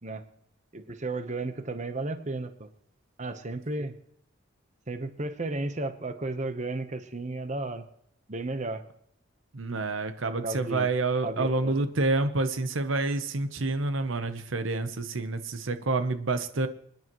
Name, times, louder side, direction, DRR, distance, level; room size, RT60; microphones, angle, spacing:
voice 1, 0.7-2.7 3.2-4.0 4.9-7.8 8.3-8.8 10.4-10.9 11.2-11.8, right 2 dB, 40° right, 9 dB, 1.0 m, -33 dB
voice 2, 9.5-16.7, right 3 dB, 80° right, 10 dB, 0.9 m, -28 dB
26.0 x 10.5 x 3.1 m, 0.70 s
head